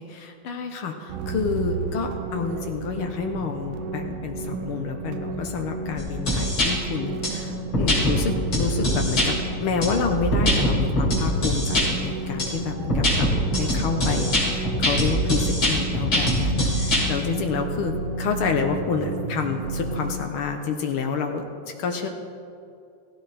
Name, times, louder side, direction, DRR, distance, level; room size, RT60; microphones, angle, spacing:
voice 1, 0.0-22.1, left 5 dB, 75° left, 4 dB, 1.2 m, -29 dB
sound 1, 1.1-20.1, right 3 dB, 75° right, 2.4 m, -32 dB
sound 2, 6.0-6.7 7.2-7.3 7.7-8.2 8.5-9.3 9.8-11.9 12.4-12.5 12.9-17.0, equal, 35° left, 5.4 m, -23 dB
17.0 x 16.0 x 4.3 m, 2.5 s
omnidirectional pair, 3.8 m